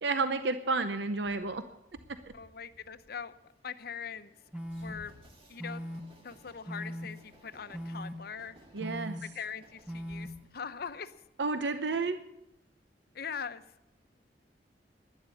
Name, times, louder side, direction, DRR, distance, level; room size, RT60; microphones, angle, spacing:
voice 1, 0.0-1.6 8.7-9.2 11.4-12.2, right 3 dB, 75° right, 10 dB, 0.8 m, -31 dB
Train, 1.3-11.7, equal, 35° right, 2.2 m, -59 dB
voice 2, 2.3-3.3 3.6-4.3 4.8-5.1 5.5-5.9 6.2-8.6 9.2-11.1 11.6-11.7 13.1-13.6, left 6 dB, 60° left, 12 dB, 0.8 m, -41 dB
sound 1, 4.5-4.9 5.6-6.0 6.7-7.1 7.7-8.1 8.8-9.2 9.9-10.3, equal, 5° right, 1.2 m, -39 dB
12.0 x 11.0 x 8.4 m, 0.87 s
head